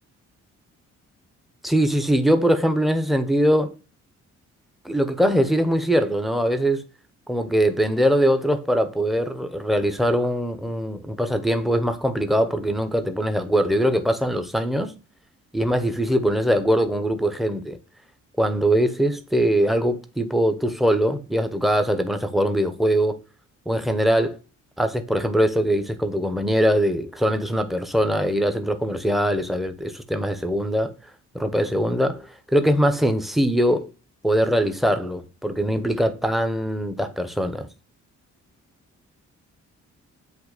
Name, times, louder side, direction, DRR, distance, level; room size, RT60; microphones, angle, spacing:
voice 1, 1.6-3.7 4.8-6.8 7.3-14.9 15.5-17.8 18.4-23.2 23.7-24.4 24.8-30.9 31.3-33.9 34.2-37.7, equal, ahead, 1.0 m, -22 dB
8.0 x 2.9 x 4.1 m
cardioid pair, 90°, 29 cm